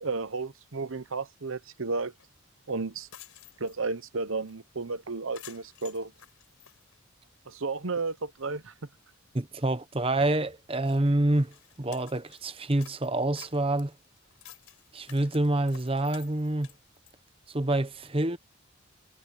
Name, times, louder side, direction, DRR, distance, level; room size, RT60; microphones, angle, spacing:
voice 1, 0.0-2.1 2.7-3.1 3.6-6.1 7.5-8.7, right 3 dB, 70° right, 1.0 m, -33 dB
sound 1, 2.2-2.3 2.7-2.8 3.0-4.0 4.5-4.6 4.9-5.0 5.3-7.5 7.9-8.0 8.6-8.7 8.9-9.2 9.6-9.7 10.3-10.4 10.8-12.4 12.8-17.1, left 11 dB, 85° left, 4.9 m, -53 dB
voice 2, 9.3-13.9 14.9-16.7 17.5-18.4, right 1 dB, 25° right, 0.9 m, -27 dB
head